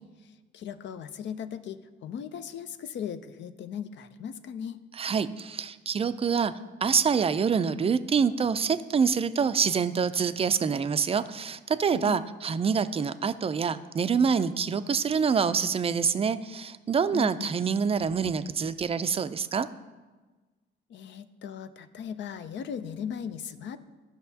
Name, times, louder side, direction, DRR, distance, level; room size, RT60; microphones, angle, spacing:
voice 1, 0.0-4.8 11.9-12.2 17.1-17.5 20.9-23.8, left 8 dB, 65° left, 10 dB, 0.6 m, -38 dB
voice 2, 5.0-6.5 6.8-19.7, right 6 dB, 30° right, 13 dB, 0.4 m, -26 dB
14.0 x 5.9 x 2.8 m, 1.3 s
cardioid pair, 90°, 20 cm